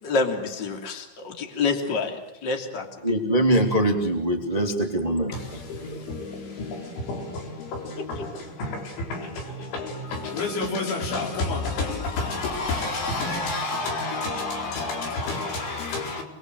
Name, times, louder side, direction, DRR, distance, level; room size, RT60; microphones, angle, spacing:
voice 1, 0.0-3.1 8.0-8.1, left 4 dB, 25° left, 2.9 m, -28 dB
voice 2, 3.0-5.6 5.9-6.0, right 1 dB, 15° right, 1.3 m, -23 dB
voice 3, 5.3-16.2, left 3 dB, 80° left, 6.6 m, -30 dB
27.5 x 21.0 x 7.9 m
omnidirectional pair, 5.4 m